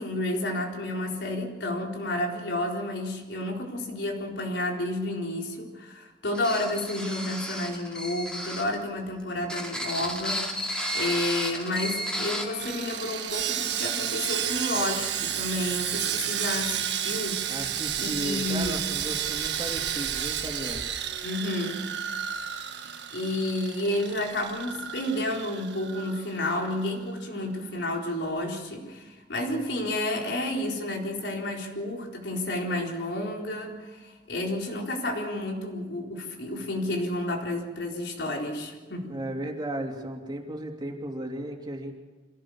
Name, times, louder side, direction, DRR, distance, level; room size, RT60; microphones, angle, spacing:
voice 1, 0.0-18.8 21.2-21.9 22.8-39.2, left 1 dB, 85° left, 0 dB, 4.1 m, -31 dB
sound 1, 6.3-8.8 9.4-12.5, equal, 5° left, 2.8 m, -32 dB
Bowed string instrument, 10.3-15.3, left 2 dB, 45° left, 2.5 m, -48 dB
Sawing, 12.6-26.8 27.1-27.3 27.7-27.9, right 9 dB, 85° right, 1.4 m, -32 dB
voice 2, 17.5-20.9 39.1-41.9, right 1 dB, 25° right, 1 dB, 3.1 m, -35 dB
26.0 x 17.0 x 7.2 m, 1.2 s
head